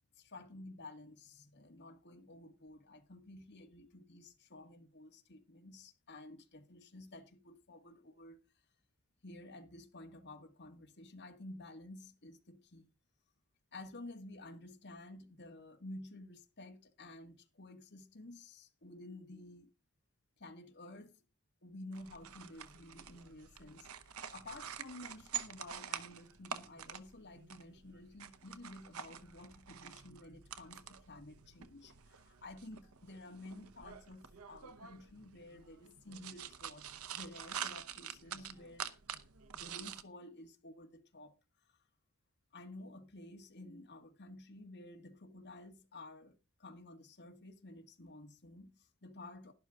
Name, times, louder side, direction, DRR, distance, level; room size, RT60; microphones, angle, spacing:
voice 1, 0.2-8.4 9.2-12.9 13.7-19.7 20.4-21.2 21.6-39.0 39.5-41.3 41.7-41.8 42.5-49.5, left 2 dB, 50° left, 2.0 m, -52 dB
sound 1, 21.9-40.0, right 8 dB, 70° right, 1.0 m, -47 dB
12.0 x 11.5 x 3.8 m
head